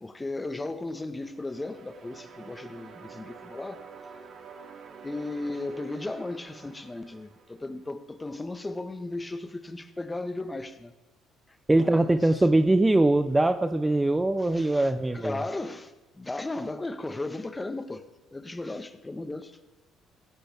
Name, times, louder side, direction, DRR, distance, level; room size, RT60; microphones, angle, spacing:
voice 1, 0.0-3.8 5.0-10.9 11.8-12.6 14.4-19.6, left 2 dB, 20° left, 1.3 m, -36 dB
sound 1, 1.2-8.2, right 5 dB, 55° right, 2.3 m, -48 dB
voice 2, 11.7-15.4, right 2 dB, 15° right, 0.7 m, -22 dB
17.0 x 15.5 x 3.5 m
supercardioid pair, 70°, 0 cm